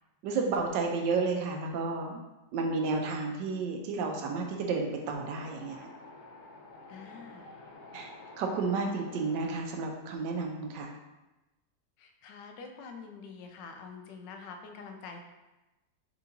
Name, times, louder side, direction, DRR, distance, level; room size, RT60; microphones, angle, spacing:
voice 1, 0.2-2.2 2.5-5.9 7.9-10.9, right 4 dB, 85° right, 2 dB, 1.3 m, -32 dB
Wind, 5.0-9.6, left 2 dB, 60° left, 0.5 m, -50 dB
voice 2, 6.9-7.5 12.0-15.2, left 5 dB, 90° left, 4 dB, 1.3 m, -46 dB
4.3 x 3.6 x 2.6 m, 1.0 s
omnidirectional pair, 1.9 m